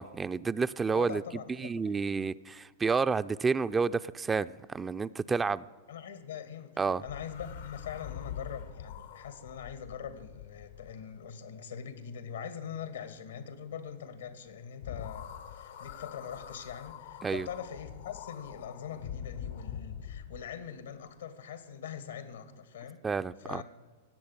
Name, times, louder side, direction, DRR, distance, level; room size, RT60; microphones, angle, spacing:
voice 1, 0.0-1.2 1.6-5.6 6.8-7.0 17.2-17.5 23.0-23.6, right 5 dB, 15° right, 13 dB, 0.4 m, -30 dB
voice 2, 0.9-2.0 5.9-23.0 23.4-23.6, left 8 dB, 85° left, 11 dB, 1.8 m, -43 dB
sound 1, 7.0-11.3 14.8-20.5, left 9 dB, 70° left, 0.9 m, -44 dB
17.0 x 8.2 x 9.6 m, 1.4 s
hypercardioid pair, 105°, 0 cm